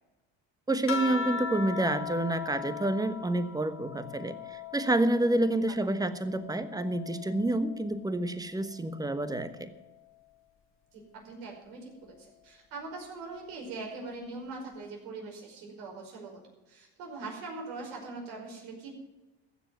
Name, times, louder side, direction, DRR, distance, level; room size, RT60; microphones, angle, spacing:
voice 1, 0.7-9.7, right 1 dB, 10° right, 11 dB, 1.3 m, -29 dB
sound 1, 0.9-5.7 6.1-7.9 9.1-9.6, left 5 dB, 40° left, 1.7 m, -38 dB
voice 2, 10.9-16.4 16.7-18.9, right 3 dB, 80° right, 1 dB, 5.3 m, -42 dB
15.0 x 7.0 x 9.3 m, 1.1 s
supercardioid pair, 90°, 33 cm